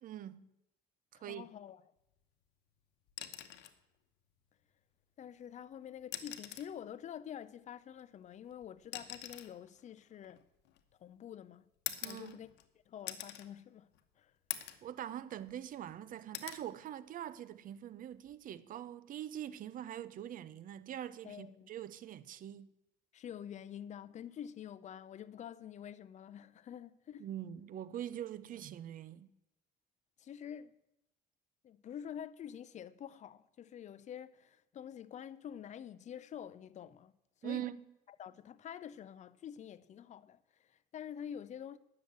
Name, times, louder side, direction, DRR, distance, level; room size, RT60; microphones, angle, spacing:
voice 1, 0.0-0.5 1.2-1.5 12.0-12.4 14.8-22.7 27.2-29.3 37.4-37.8, right 11 dB, 55° right, 0.6 m, -43 dB
voice 2, 1.1-1.9 5.2-10.4 11.0-11.6 12.0-12.5 12.9-13.9 14.2-14.3 21.2-21.7 23.1-27.3 30.2-30.7 31.6-37.1 37.4-37.7 38.2-41.8, left 9 dB, 45° left, 0.6 m, -47 dB
sound 1, 3.1-3.8 5.2-5.4 6.0-6.8 8.0-11.0 11.9-12.7 13.1-13.5 13.9-14.0 14.5-14.9 15.3-15.9 16.3-16.7 18.1-18.4, left 13 dB, 85° left, 0.9 m, -44 dB
9.7 x 6.7 x 7.9 m
cardioid pair, 110°, 17 cm